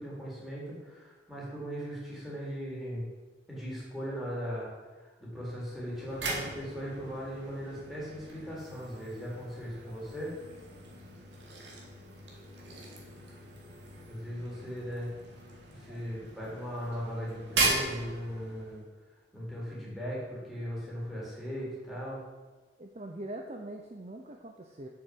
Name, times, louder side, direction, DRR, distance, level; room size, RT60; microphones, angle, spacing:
voice 1, 0.0-3.0 3.5-4.7 5.0-10.4 14.1-15.1 15.7-18.8 19.3-22.2, equal, ahead, -7 dB, 3.8 m, -38 dB
sound 1, 5.8-18.8, right 3 dB, 75° right, 2.5 m, -38 dB
voice 2, 22.8-24.9, right 1 dB, 35° right, 3 dB, 0.7 m, -42 dB
8.0 x 7.0 x 7.8 m, 1.3 s
head